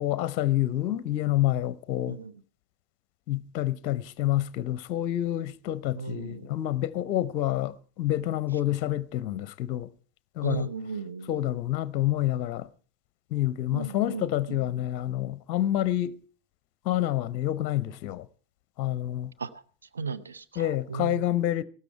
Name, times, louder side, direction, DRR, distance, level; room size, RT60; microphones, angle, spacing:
voice 1, 0.0-2.2 3.3-9.9 10.4-10.7 11.3-12.7 13.3-16.1 16.8-18.3 18.8-19.3 20.6-21.6, left 13 dB, 40° left, 0.6 m, -28 dB
voice 2, 5.9-6.5 10.4-11.5 13.7-14.7 19.4-19.5 19.9-21.2, right 5 dB, 70° right, 0.8 m, -36 dB
16.5 x 13.0 x 4.6 m
figure-of-eight pair, 90°, 0 cm